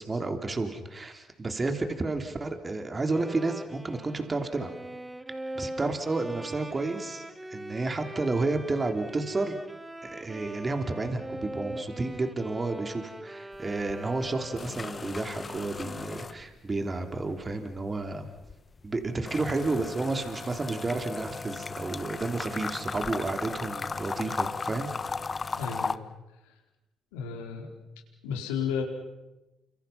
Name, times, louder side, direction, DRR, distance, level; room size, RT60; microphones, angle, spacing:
voice 1, 0.0-4.7 5.3-9.6 10.0-18.3 18.8-24.9, right 3 dB, 30° right, 6 dB, 3.4 m, -31 dB
Bowed string instrument, 3.1-14.9, right 1 dB, 15° right, 1.4 m, -41 dB
sound 1, 13.5-13.9 14.2-16.9 17.2-26.0, left 4 dB, 35° left, 1.0 m, -36 dB
voice 2, 25.6-26.0 27.1-27.7 28.2-28.8, left 7 dB, 85° left, 2 dB, 4.4 m, -32 dB
29.5 x 27.0 x 5.9 m, 1.0 s
hypercardioid pair, 55°, 0 cm